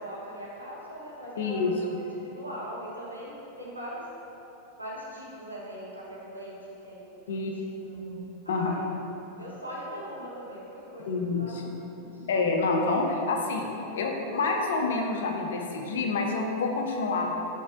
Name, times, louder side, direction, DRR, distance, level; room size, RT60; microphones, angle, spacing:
voice 1, 0.0-4.1 4.8-7.2 7.6-8.9 9.4-12.3 12.9-13.2 13.5-14.0, equal, 85° right, -6 dB, 0.7 m, -41 dB
voice 2, 1.4-1.7 7.3-7.5 8.5-8.7 11.1-11.6 12.3-13.7 13.9-17.3, left 3 dB, 60° left, 2 dB, 0.4 m, -27 dB
4.1 x 3.2 x 2.4 m, 3.0 s
figure-of-eight pair, 90°, 0 cm